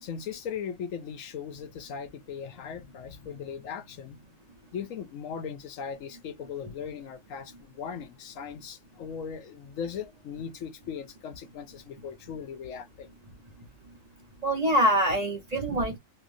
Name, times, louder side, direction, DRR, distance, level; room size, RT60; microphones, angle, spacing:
voice 1, 0.0-4.2 4.7-13.1, left 7 dB, 75° left, 1.0 m, -38 dB
voice 2, 14.4-16.0, equal, 35° right, 0.8 m, -25 dB
3.1 x 2.7 x 2.6 m
omnidirectional pair, 1.4 m